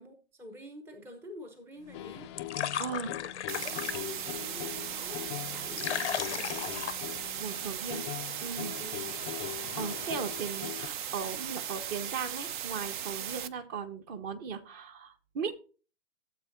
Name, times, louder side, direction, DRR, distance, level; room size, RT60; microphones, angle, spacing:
voice 1, 0.0-2.3 3.1-3.3 3.7-6.7 8.8-9.2, equal, 5° right, 6 dB, 0.7 m, -48 dB
sound 1, 1.8-7.8, left 9 dB, 80° left, 0.7 m, -38 dB
sound 2, 1.9-10.9, left 16 dB, 25° left, 0.4 m, -42 dB
voice 2, 2.8-3.1 7.4-8.1 8.4-8.8 9.8-15.5, right 6 dB, 30° right, 9 dB, 1.1 m, -37 dB
sound 3, 3.5-13.5, right 9 dB, 45° right, 0.8 m, -37 dB
12.5 x 7.7 x 2.6 m, 0.36 s
hypercardioid pair, 120°, 34 cm